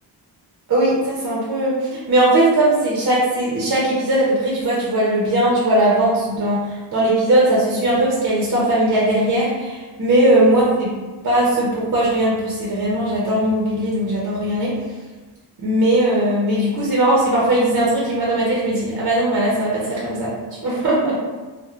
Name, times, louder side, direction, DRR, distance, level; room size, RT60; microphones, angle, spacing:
voice 1, 0.7-10.9 11.2-14.7 15.6-20.3 20.6-21.1, right 1 dB, 45° right, -5 dB, 0.6 m, -19 dB
2.9 x 2.1 x 2.4 m, 1.3 s
wide cardioid pair, 100°, 42 cm